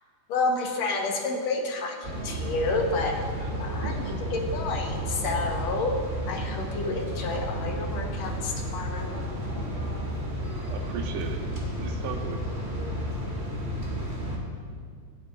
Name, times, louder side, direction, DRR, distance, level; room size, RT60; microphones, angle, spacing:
voice 1, 0.3-3.1 3.6-6.0 6.3-9.2, left 3 dB, 65° left, 2 dB, 2.0 m, -30 dB
sound 1, 2.0-14.4, equal, 25° right, 1.8 m, -32 dB
voice 2, 3.4-4.3 10.6-11.4 11.8-12.5, right 5 dB, 85° right, 4 dB, 2.4 m, -37 dB
25.5 x 9.1 x 2.5 m, 2.1 s
omnidirectional pair, 3.7 m